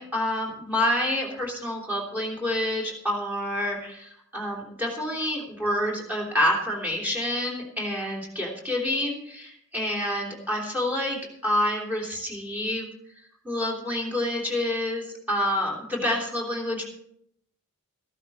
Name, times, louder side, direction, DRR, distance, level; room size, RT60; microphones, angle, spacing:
voice 1, 0.0-12.9 13.4-16.8, left 1 dB, 10° right, -2 dB, 3.2 m, -28 dB
14.5 x 12.5 x 4.2 m, 0.71 s
head